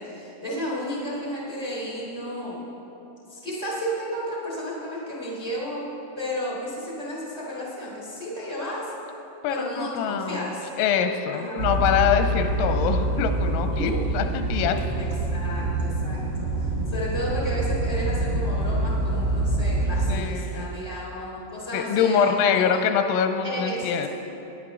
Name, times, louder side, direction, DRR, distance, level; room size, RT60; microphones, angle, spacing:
voice 1, 0.0-2.8 3.3-5.8 6.1-8.8 9.5-10.7 11.3-11.7 13.7-14.0 15.0-22.7 23.4-24.1, equal, 90° right, -5 dB, 0.4 m, -32 dB
voice 2, 9.4-14.9 20.1-20.7 21.7-24.1, left 7 dB, 85° left, 7 dB, 3.2 m, -24 dB
sound 1, 11.6-20.1, right 1 dB, 65° right, 1.1 m, -26 dB
19.0 x 9.8 x 3.8 m, 3.0 s
omnidirectional pair, 5.9 m